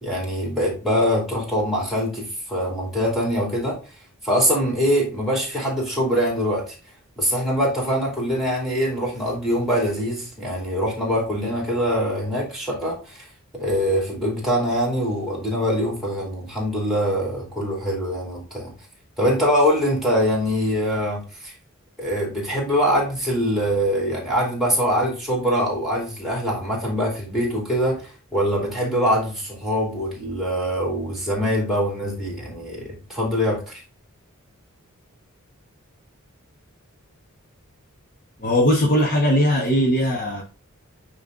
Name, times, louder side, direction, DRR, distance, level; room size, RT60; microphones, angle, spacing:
voice 1, 0.0-3.8 4.2-6.8 7.2-13.2 13.5-18.7 19.2-21.5 22.0-33.6, equal, ahead, 2.9 m, -23 dB
voice 2, 38.4-40.4, equal, 40° left, 1.1 m, -19 dB
9.4 x 3.2 x 3.7 m
head